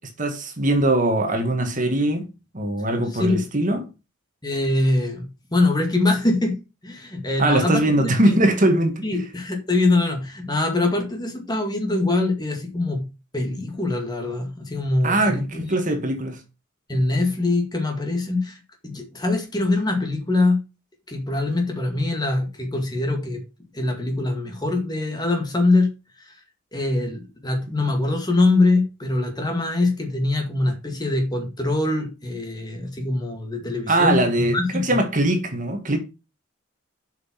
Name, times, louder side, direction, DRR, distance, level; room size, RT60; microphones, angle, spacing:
voice 1, 0.2-2.3 2.5-3.8 7.4-9.0 15.0-16.4 33.9-36.0, right 1 dB, 40° right, 1.8 m, -21 dB
voice 2, 4.4-6.5 6.8-8.4 9.0-13.1 13.3-15.7 16.9-18.6 18.8-20.6 21.1-23.4 23.7-25.9 26.7-35.0, left 2 dB, 20° left, 2.1 m, -23 dB
7.6 x 6.0 x 5.9 m
head